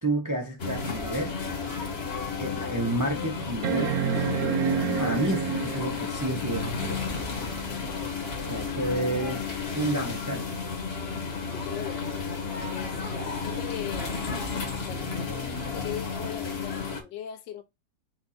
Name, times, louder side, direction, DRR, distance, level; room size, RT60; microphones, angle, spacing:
voice 1, 0.0-1.4 2.4-4.0 5.0-7.0 8.5-9.4 9.7-10.5, right 1 dB, 30° right, 0.3 m, -30 dB
sound 1, 0.6-17.0, left 5 dB, 40° left, 1.2 m, -32 dB
sound 2, 1.5-1.6 2.2-2.3 3.6-6.1 7.8-7.9, right 7 dB, 65° right, 1.0 m, -28 dB
voice 2, 7.6-8.1 8.4-9.6 11.4-12.4 12.7-14.2 14.9-17.6, left 10 dB, 75° left, 1.3 m, -41 dB
4.5 x 2.5 x 4.1 m
omnidirectional pair, 2.0 m